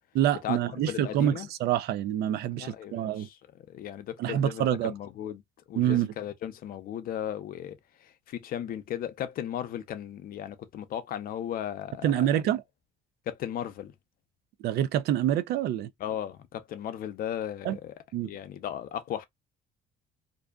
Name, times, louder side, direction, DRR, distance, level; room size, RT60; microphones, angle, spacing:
voice 1, 0.1-3.3 4.2-4.9 5.7-6.1 12.0-12.6 14.6-15.9 17.6-17.8 18.1-18.3, right 11 dB, 70° right, 0.4 m, -26 dB
voice 2, 0.9-1.5 2.5-3.4 3.7-5.4 5.7-12.4 13.3-13.9 16.0-17.9 18.2-19.2, left 10 dB, 60° left, 0.6 m, -36 dB
2.5 x 2.2 x 2.3 m
cardioid pair, 110°, 17 cm